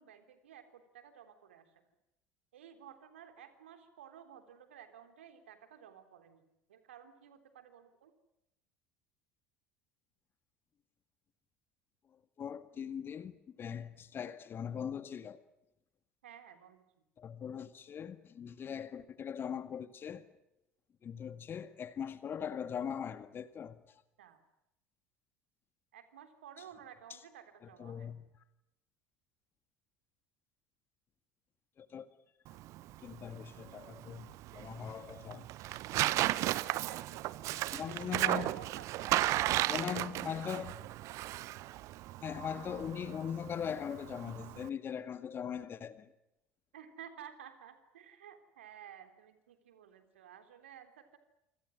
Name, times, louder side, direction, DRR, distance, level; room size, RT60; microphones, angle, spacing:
voice 1, 0.0-1.7 2.5-6.4 6.7-8.1 16.2-16.9 24.2-24.4 25.9-28.2 36.6-37.3 37.9-40.8 46.7-51.2, right 9 dB, 70° right, 3.4 m, -54 dB
voice 2, 12.4-15.4 17.2-20.2 21.0-23.8 27.8-28.3 31.8-32.1 33.0-35.5 36.0-36.1 37.7-38.5 39.7-40.8 42.2-46.1, left 8 dB, 35° left, 1.9 m, -40 dB
Tearing, 32.5-44.7, right 16 dB, 50° right, 1.0 m, -35 dB
27.5 x 26.0 x 6.4 m
figure-of-eight pair, 70°, 7 cm